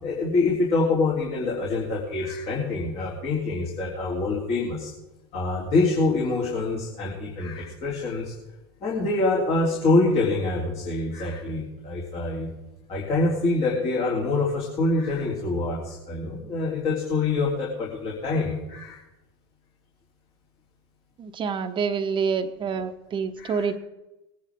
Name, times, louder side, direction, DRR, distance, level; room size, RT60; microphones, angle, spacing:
voice 1, 0.0-4.9 5.3-8.3 8.8-12.5 12.9-19.0 23.4-23.6, left 3 dB, 45° left, -3 dB, 3.4 m, -25 dB
voice 2, 21.2-23.8, right 6 dB, 35° right, 9 dB, 1.0 m, -27 dB
20.5 x 10.0 x 3.6 m, 0.98 s
hypercardioid pair, 85°, 14 cm